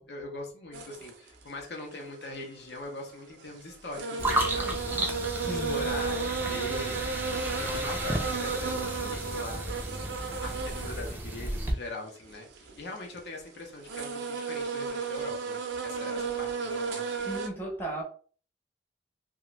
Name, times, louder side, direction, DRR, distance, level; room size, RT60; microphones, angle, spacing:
voice 1, 0.0-7.3 7.6-9.7 10.4-17.3, left 2 dB, 70° left, 0.7 m, -42 dB
sound 1, 0.7-1.1 2.8-2.9 3.4-3.5 3.9-11.3 11.6-11.7 12.3-13.2 13.7-17.5, right 4 dB, 90° right, 0.5 m, -33 dB
sound 2, 4.2-11.7, right 1 dB, 10° right, 0.3 m, -33 dB
voice 2, 5.4-5.9 17.3-18.0, right 1 dB, 10° left, 0.7 m, -35 dB
2.4 x 2.2 x 3.0 m
head